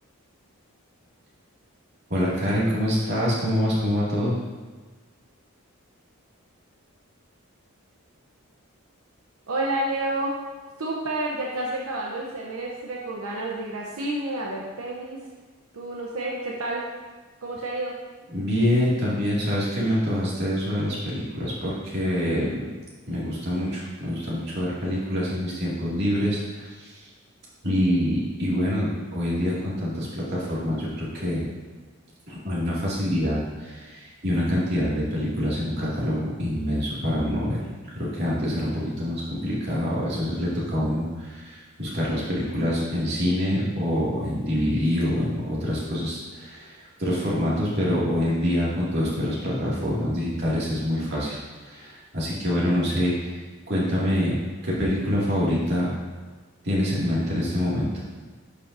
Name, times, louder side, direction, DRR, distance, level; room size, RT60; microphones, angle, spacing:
voice 1, 2.1-4.4 18.3-22.6 23.1-27.0 27.6-31.4 32.3-37.6 37.9-51.4 51.6-53.4 53.7-55.9 56.6-58.0, equal, 50° right, -7 dB, 2.5 m, -26 dB
voice 2, 9.5-10.3 10.8-15.2 15.7-16.8 17.4-18.0, right 2 dB, 85° right, -3 dB, 1.0 m, -29 dB
11.5 x 5.4 x 2.8 m, 1.4 s
head